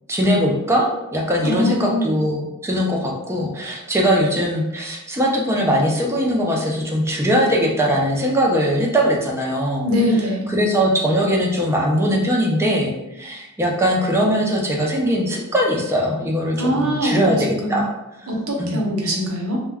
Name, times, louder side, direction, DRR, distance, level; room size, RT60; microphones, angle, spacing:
voice 1, 0.1-9.9 10.5-17.9 18.6-19.1, equal, 15° right, -1 dB, 0.5 m, -20 dB
voice 2, 1.4-2.1 9.8-10.5 16.6-17.8 18.3-19.6, equal, 75° right, -1 dB, 0.7 m, -22 dB
2.2 x 2.2 x 3.4 m, 0.92 s
head